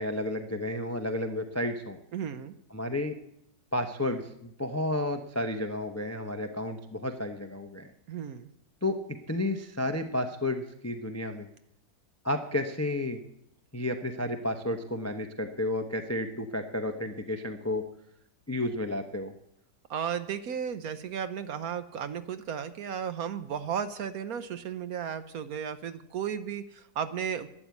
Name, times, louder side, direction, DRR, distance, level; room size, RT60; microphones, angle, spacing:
voice 1, 0.0-2.0 2.7-3.2 3.7-7.9 8.8-9.0 9.3-11.5 12.2-13.2 13.7-17.9 18.5-19.3, left 1 dB, 25° left, 7 dB, 0.3 m, -31 dB
voice 2, 2.1-2.5 8.1-8.5 19.9-27.5, right 8 dB, 65° right, 11 dB, 1.1 m, -34 dB
12.0 x 9.3 x 8.3 m, 0.78 s
omnidirectional pair, 2.0 m